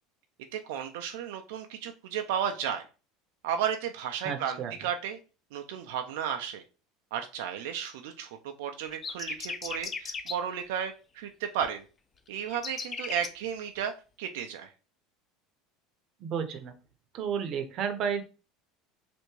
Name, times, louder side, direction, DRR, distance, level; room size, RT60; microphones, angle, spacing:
voice 1, 0.5-2.8 3.4-5.2 5.5-6.6 7.1-11.8 12.3-13.9 14.2-14.7, right 8 dB, 85° right, 5 dB, 0.3 m, -33 dB
voice 2, 4.2-4.7 16.2-16.7 17.1-18.2, right 7 dB, 45° right, 7 dB, 0.6 m, -32 dB
sound 1, 8.9-10.4 12.4-13.3, left 5 dB, 25° left, 0.4 m, -36 dB
3.3 x 2.5 x 3.1 m, 0.34 s
supercardioid pair, 120°, 0 cm